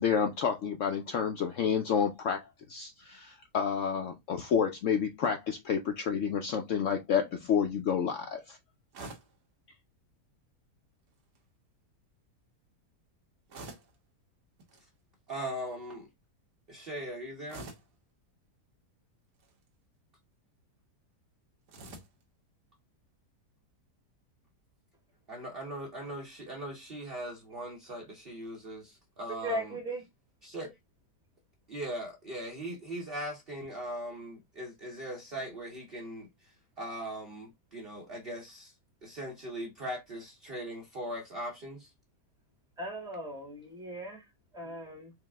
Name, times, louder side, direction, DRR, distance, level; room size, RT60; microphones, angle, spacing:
voice 1, 0.0-2.4 2.7-8.6, left 7 dB, 70° left, 0.7 m, -29 dB
sound 1, 8.9-9.4 11.1-11.4 13.5-14.0 14.6-14.9 17.5-18.0 19.3-19.7 21.7-22.2, right 2 dB, 85° right, 1.6 m, -47 dB
voice 2, 15.3-16.1 16.7-17.6 25.3-29.7 30.4-30.7 31.7-38.7 39.0-41.9 44.6-44.8, right 1 dB, 45° right, 0.8 m, -40 dB
voice 3, 29.4-30.0 42.8-45.1, equal, 5° right, 0.8 m, -38 dB
4.7 x 2.1 x 3.4 m
omnidirectional pair, 1.8 m